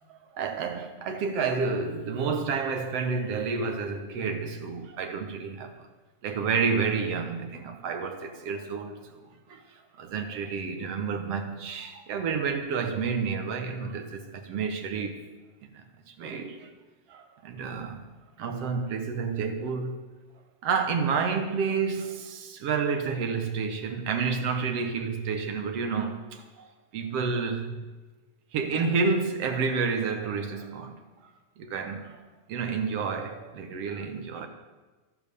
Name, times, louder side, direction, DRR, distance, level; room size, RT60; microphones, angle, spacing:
voice 1, 0.1-5.9 6.2-15.2 15.6-16.7 17.1-18.0 18.4-20.0 20.6-27.8 28.5-31.0 31.6-32.2 32.5-34.5, right 5 dB, 60° right, 2.2 m, -30 dB
12.5 x 12.5 x 6.9 m
omnidirectional pair, 3.4 m